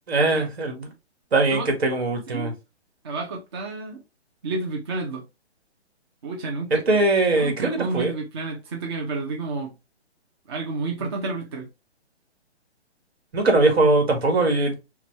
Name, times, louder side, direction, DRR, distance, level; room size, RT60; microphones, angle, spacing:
voice 1, 0.1-0.9 1.3-2.5 6.7-8.1 11.0-11.1 13.3-14.7, right 2 dB, 65° right, 1.8 m, -21 dB
voice 2, 3.0-4.0 4.4-5.2 6.2-6.8 7.3-9.7 10.5-11.7, right 3 dB, 25° right, 0.5 m, -30 dB
5.7 x 2.3 x 3.2 m
hypercardioid pair, 145°, 34 cm